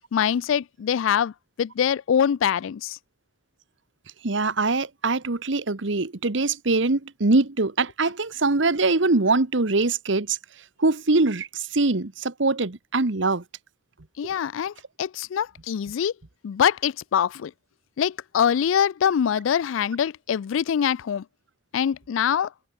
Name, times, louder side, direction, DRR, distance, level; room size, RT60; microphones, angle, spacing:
voice 1, 0.1-1.3 1.6-3.0 14.2-14.7 15.0-16.1 16.4-17.5 18.0-21.2 21.7-22.5, left 8 dB, 85° left, 0.3 m, -24 dB
voice 2, 4.2-10.4 10.8-13.4, right 3 dB, 75° right, 1.2 m, -23 dB
head